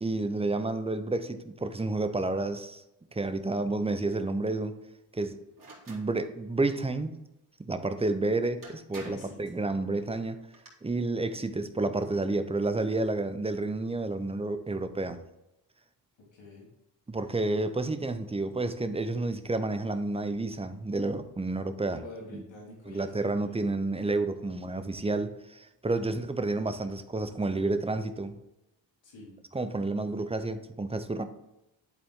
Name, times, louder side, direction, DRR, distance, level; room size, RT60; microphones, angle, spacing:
voice 1, 0.0-2.8 3.1-4.8 5.1-5.4 5.9-7.1 7.6-10.5 10.8-15.2 17.1-22.0 22.3-22.4 22.9-28.4 29.5-31.2, right 2 dB, 15° right, 9 dB, 0.7 m, -30 dB
sound 1, 5.6-6.1 8.1-8.2 8.6-9.4 10.3-10.7, right 3 dB, 45° right, 2.7 m, -47 dB
voice 2, 9.0-9.4 16.3-16.7 21.9-23.6 29.0-29.4 29.9-30.2, left 2 dB, 75° left, -3 dB, 3.0 m, -47 dB
10.5 x 4.1 x 3.7 m, 0.91 s
cardioid pair, 70°, 46 cm